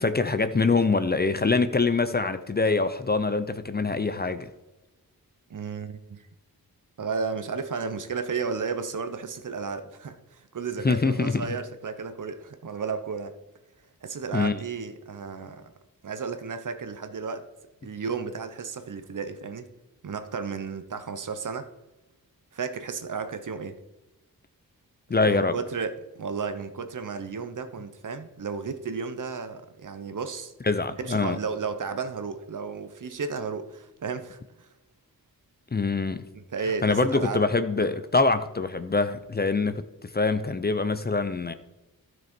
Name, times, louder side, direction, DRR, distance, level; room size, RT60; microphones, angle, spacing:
voice 1, 0.0-4.5 10.8-11.4 14.3-14.6 25.1-25.6 30.6-31.4 35.7-36.3 36.8-41.5, left 3 dB, 25° left, 0.6 m, -24 dB
voice 2, 5.5-6.3 7.0-13.3 14.0-15.7 16.0-17.4 17.8-19.7 20.0-21.7 22.5-23.8 25.3-30.5 31.0-34.7 36.3-37.5, right 5 dB, 55° right, 0.9 m, -33 dB
12.5 x 6.2 x 4.4 m
wide cardioid pair, 90°, 37 cm